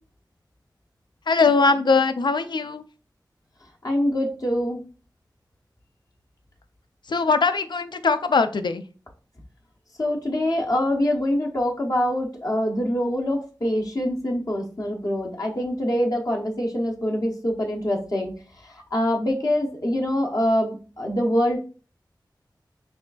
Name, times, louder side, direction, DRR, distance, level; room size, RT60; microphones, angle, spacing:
voice 1, 1.3-2.8 7.1-8.8, left 4 dB, 70° left, 10 dB, 0.4 m, -21 dB
voice 2, 3.8-4.8 10.0-18.3 18.9-21.6, left 1 dB, 50° left, -1 dB, 0.8 m, -24 dB
5.9 x 2.4 x 2.3 m, 0.37 s
wide cardioid pair, 50°, 8 cm